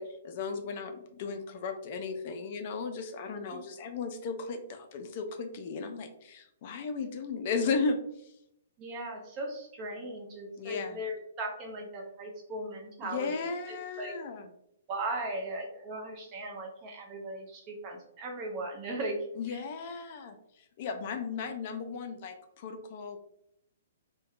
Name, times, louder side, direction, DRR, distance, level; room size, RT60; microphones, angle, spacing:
voice 1, 0.0-8.3 10.6-11.0 13.0-14.5 19.4-23.2, left 4 dB, 45° left, 7 dB, 0.3 m, -35 dB
voice 2, 8.8-14.2 14.9-19.2 19.5-19.6, right 1 dB, 30° right, 1 dB, 0.7 m, -38 dB
2.6 x 2.1 x 2.4 m, 0.78 s
figure-of-eight pair, 125°, 0 cm